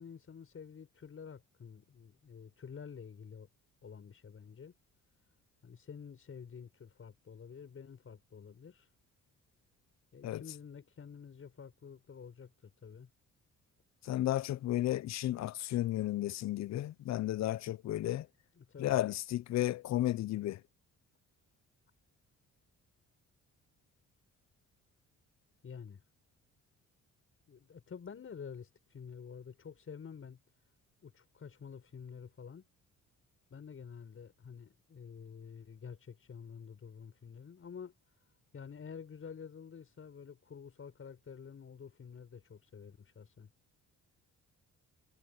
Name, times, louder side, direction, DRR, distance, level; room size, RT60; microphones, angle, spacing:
voice 1, 0.0-3.5 3.8-4.7 5.6-8.9 10.1-13.1 18.6-19.0 25.6-26.0 27.5-30.4 31.0-32.7 33.5-38.0 38.5-43.5, left 6 dB, 45° left, 6.5 m, -49 dB
voice 2, 14.0-18.3 18.8-20.6, left 14 dB, 65° left, 0.6 m, -33 dB
cardioid pair, 90°, 30 cm